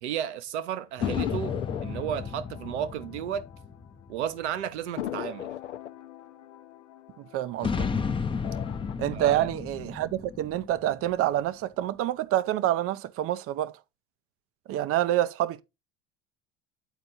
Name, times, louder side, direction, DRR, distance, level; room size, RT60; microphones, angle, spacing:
voice 1, 0.0-3.5 4.1-5.5 9.1-9.5, right 9 dB, 75° right, 1.0 m, -33 dB
sound 1, 1.0-4.1 4.4-4.5 5.0-7.9 8.3-8.9, left 12 dB, 85° left, 0.6 m, -38 dB
sound 2, 1.0-4.7 7.6-11.4, left 5 dB, 15° left, 0.7 m, -33 dB
voice 2, 7.2-7.9 9.0-13.7 14.7-15.6, right 13 dB, 40° right, 0.6 m, -27 dB
8.1 x 4.4 x 3.9 m
hypercardioid pair, 80°, 34 cm